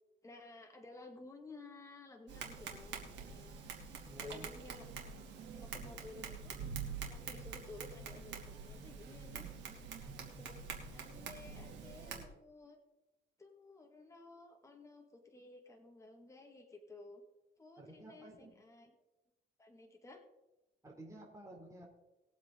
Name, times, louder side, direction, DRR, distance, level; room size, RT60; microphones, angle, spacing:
voice 1, 0.2-3.8 4.2-4.9 5.6-6.6 7.1-9.6 10.4-10.6 10.9-12.8 13.4-17.2 17.6-18.9 19.6-20.2, left 3 dB, 15° left, 2 dB, 1.9 m, -54 dB
Tap, 2.3-12.2, right 6 dB, 85° right, 2.6 m, -46 dB
voice 2, 4.1-4.5 17.8-18.6 20.8-21.9, right 1 dB, 15° right, -1 dB, 3.1 m, -52 dB
20.5 x 7.7 x 3.9 m, 0.99 s
cardioid pair, 105°, 18 cm